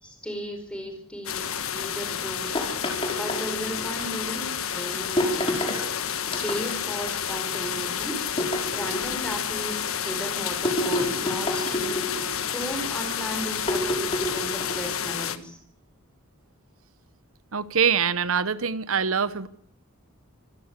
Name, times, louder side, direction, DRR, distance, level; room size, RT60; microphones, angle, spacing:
voice 1, 0.0-2.7 3.1-5.6 6.4-8.3 8.7-15.6, equal, 5° left, 5.2 m, -36 dB
sound 1, 1.2-15.4, left 8 dB, 80° left, 1.4 m, -30 dB
sound 2, 2.5-3.9 5.2-5.8 6.3-6.9 8.4-9.3 10.6-12.4 13.7-15.0, left 1 dB, 25° left, 5.8 m, -28 dB
voice 2, 17.5-19.5, right 6 dB, 80° right, 1.1 m, -24 dB
26.0 x 15.5 x 8.4 m
head